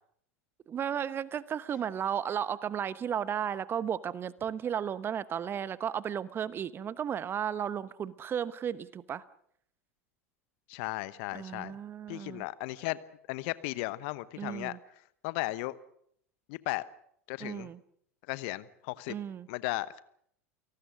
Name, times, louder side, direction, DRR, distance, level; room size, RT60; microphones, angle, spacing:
voice 1, 0.7-9.2 11.3-12.4 14.4-14.8 17.4-17.8 19.1-19.5, right 8 dB, 30° right, 17 dB, 1.1 m, -34 dB
voice 2, 10.7-11.8 12.1-13.0 13.3-14.8 15.2-15.8 16.5-16.8 17.3-17.7 18.3-19.1 19.5-20.0, left 20 dB, 55° left, 17 dB, 1.0 m, -35 dB
29.5 x 18.5 x 6.3 m, 0.68 s
figure-of-eight pair, 85°, 8 cm